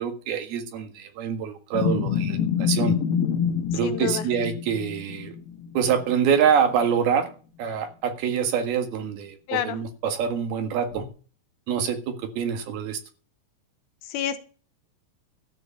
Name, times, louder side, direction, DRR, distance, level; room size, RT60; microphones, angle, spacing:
voice 1, 0.0-2.9 3.7-5.3 5.7-7.3 7.6-11.0 11.7-13.0, right 7 dB, 60° right, 7 dB, 3.2 m, -25 dB
sound 1, 1.7-6.5 6.8-6.9 10.9-11.1, left 7 dB, 60° left, 3.0 m, -27 dB
voice 2, 3.8-4.2 9.5-9.8 14.0-14.4, left 10 dB, 75° left, 10 dB, 3.1 m, -28 dB
13.5 x 5.1 x 8.5 m, 0.38 s
omnidirectional pair, 5.5 m